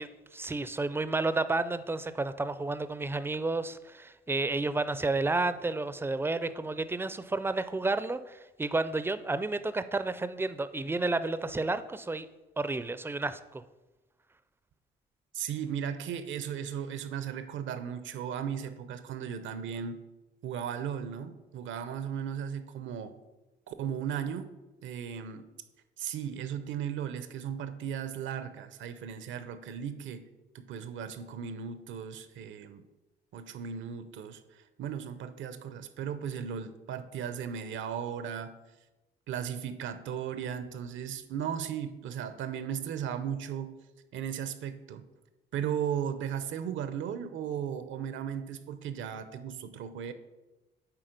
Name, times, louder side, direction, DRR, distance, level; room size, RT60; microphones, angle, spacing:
voice 1, 0.0-12.3 12.6-13.6, right 3 dB, 10° right, 13 dB, 0.4 m, -31 dB
voice 2, 15.3-20.0 20.4-23.2 23.7-24.6 24.8-25.5 26.0-30.3 30.5-32.9 33.3-38.6 39.3-43.8 44.1-45.0 45.5-50.1, right 8 dB, 75° right, 11 dB, 0.7 m, -36 dB
9.1 x 3.7 x 5.1 m, 1.1 s
cardioid pair, 90°, 20 cm